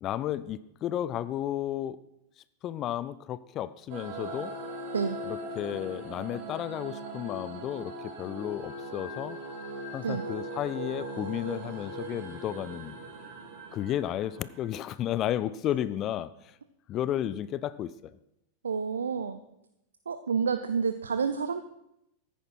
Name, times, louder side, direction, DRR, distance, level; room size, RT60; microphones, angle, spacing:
voice 1, 0.0-2.0 2.6-4.5 5.3-9.4 9.9-12.9 13.7-16.3 16.9-17.9, left 11 dB, 35° left, 17 dB, 0.4 m, -33 dB
sound 1, 3.9-14.8, right 1 dB, 45° right, 2.8 m, -40 dB
voice 2, 18.6-19.4 20.1-21.6, right 6 dB, 70° right, 10 dB, 0.5 m, -29 dB
14.0 x 10.0 x 4.5 m, 0.82 s
figure-of-eight pair, 90°, 0 cm